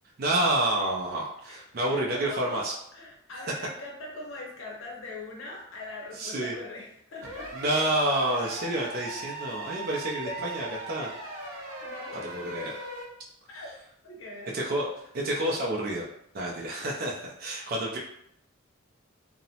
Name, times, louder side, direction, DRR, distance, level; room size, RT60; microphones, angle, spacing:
voice 1, 0.2-2.7 6.2-6.6 7.5-11.1 12.2-12.7 14.5-14.9 15.1-16.1 16.3-18.0, right 1 dB, 45° right, -3 dB, 0.4 m, -29 dB
voice 2, 1.5-7.7 10.2-10.6 11.8-12.5 13.5-13.8 14.0-14.6, left 2 dB, 70° left, -1 dB, 0.7 m, -42 dB
sound 1, 7.2-13.1, right 2 dB, 80° right, 0.8 m, -39 dB
2.7 x 2.0 x 2.7 m, 0.74 s
head